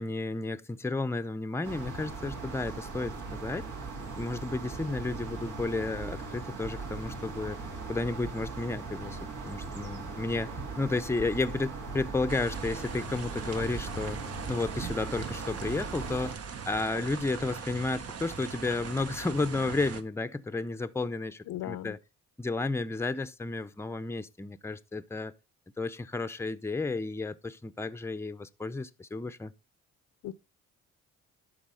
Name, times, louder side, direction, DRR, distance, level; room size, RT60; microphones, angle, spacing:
voice 1, 0.0-3.7 4.2-7.6 7.9-14.2 14.5-16.4 16.7-22.0 22.4-25.3 25.8-29.5, left 3 dB, 10° left, 0.7 m, -32 dB
sound 1, 1.6-16.3, right 4 dB, 75° right, 3.1 m, -39 dB
sound 2, 12.3-20.0, right 6 dB, 55° right, 1.2 m, -41 dB
voice 2, 21.5-22.0 30.2-30.3, left 14 dB, 80° left, 0.8 m, -37 dB
11.5 x 4.2 x 5.5 m
cardioid pair, 90°, 30 cm